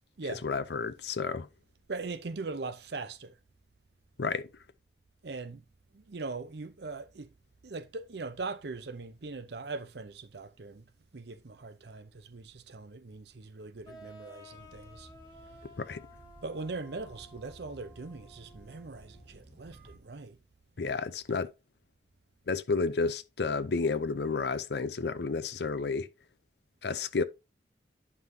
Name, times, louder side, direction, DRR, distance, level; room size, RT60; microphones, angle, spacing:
voice 1, 0.4-1.5 4.2-4.5 15.8-16.0 20.8-21.5 22.5-26.1 26.8-27.2, left 4 dB, 70° left, 0.6 m, -31 dB
voice 2, 1.9-3.4 5.2-5.6 5.9-7.3 7.6-10.8 11.1-15.1 16.4-20.4, right 3 dB, 70° right, 0.6 m, -40 dB
sound 1, 13.8-19.4, left 1 dB, 20° left, 1.2 m, -54 dB
sound 2, 14.5-20.0, right 1 dB, 10° right, 2.1 m, -55 dB
9.6 x 5.4 x 2.7 m
head